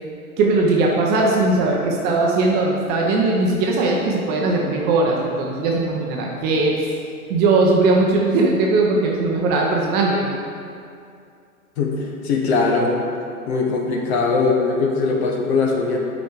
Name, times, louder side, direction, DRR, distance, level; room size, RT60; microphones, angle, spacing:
voice 1, 0.4-6.7 7.3-10.3, right 3 dB, 20° right, -1 dB, 0.8 m, -19 dB
voice 2, 11.8-13.0 13.5-16.0, left 4 dB, 45° left, 1 dB, 1.3 m, -20 dB
9.2 x 5.1 x 4.7 m, 2.4 s
figure-of-eight pair, 110°, 45 cm